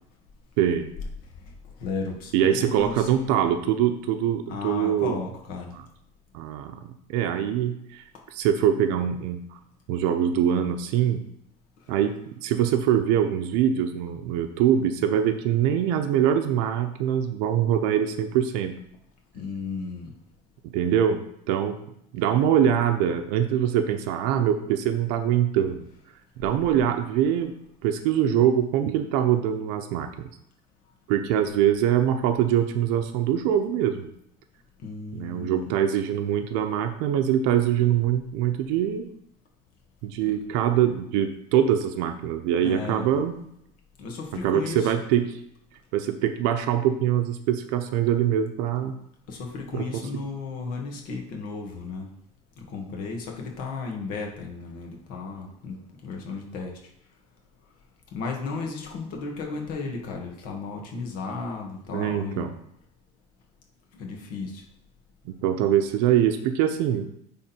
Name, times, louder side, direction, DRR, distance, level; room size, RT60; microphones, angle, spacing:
voice 1, 0.6-0.9 2.3-5.2 5.7-5.8 6.3-8.0 8.3-9.6 9.9-11.2 11.9-18.8 20.6-21.8 22.1-25.9 26.4-27.5 27.8-30.1 31.1-34.1 35.1-39.1 40.0-43.4 44.4-45.4 45.9-49.0 49.7-49.8 61.9-62.5 65.3-67.1, right 10 dB, 70° right, 6 dB, 0.7 m, -23 dB
voice 2, 1.8-3.5 4.5-5.7 19.3-20.1 34.8-35.7 40.2-40.3 42.6-43.1 44.0-44.9 49.3-52.1 52.6-56.8 58.1-62.5 63.9-64.6, left 4 dB, 55° left, 1 dB, 2.0 m, -34 dB
9.9 x 3.9 x 4.4 m, 0.76 s
cardioid pair, 160°, 17 cm